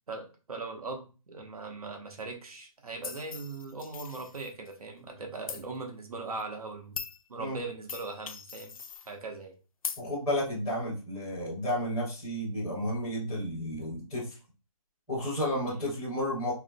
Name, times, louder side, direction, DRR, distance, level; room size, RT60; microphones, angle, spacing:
voice 1, 0.1-7.0 7.3-8.7 9.1-9.6 15.7-15.8, right 3 dB, 90° right, 3 dB, 1.1 m, -40 dB
sound 1, 3.0-4.7 5.5-5.6 6.4-6.5 7.0-7.2 7.9-9.1 9.8-10.0, left 6 dB, 70° left, 0.5 m, -40 dB
voice 2, 10.0-14.3 15.1-16.5, equal, 5° right, -10 dB, 0.5 m, -32 dB
4.7 x 2.9 x 2.2 m, 0.32 s
hypercardioid pair, 175°, 18 cm